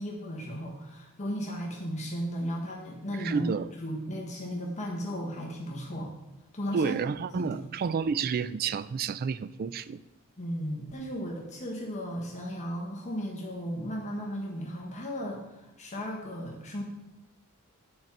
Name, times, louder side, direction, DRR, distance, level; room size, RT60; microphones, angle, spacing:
voice 1, 0.0-6.1 6.5-6.9 7.3-7.7 10.4-16.8, equal, 30° left, -1 dB, 1.1 m, -35 dB
voice 2, 3.2-3.7 6.7-10.0, right 6 dB, 45° right, 16 dB, 0.3 m, -30 dB
9.4 x 4.6 x 5.8 m, 0.99 s
head